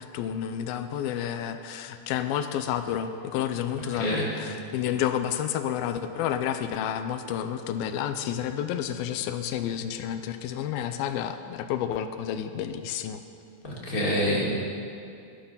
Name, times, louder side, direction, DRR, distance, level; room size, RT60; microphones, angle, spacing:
voice 1, 0.0-13.2, left 9 dB, 85° left, 9 dB, 2.5 m, -30 dB
voice 2, 3.8-4.4 13.6-14.4, equal, 25° left, -4 dB, 3.0 m, -27 dB
20.0 x 11.5 x 5.7 m, 2.5 s
omnidirectional pair, 4.3 m